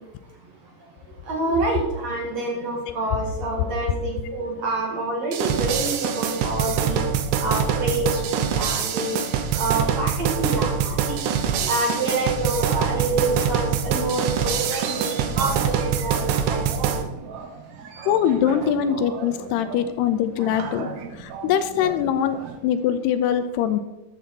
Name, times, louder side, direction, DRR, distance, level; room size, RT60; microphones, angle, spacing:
voice 1, 1.3-7.0 7.3-9.2 9.6-11.3 11.6-16.7, right 2 dB, 50° right, 0 dB, 2.5 m, -27 dB
sound 1, 5.3-17.0, right 7 dB, 90° right, 3.2 m, -24 dB
sound 2, 11.8-22.6, right 6 dB, 75° right, 1.7 m, -37 dB
voice 2, 18.1-23.8, left 9 dB, 85° left, 10 dB, 2.7 m, -23 dB
13.0 x 10.0 x 4.2 m, 1.0 s
omnidirectional pair, 4.8 m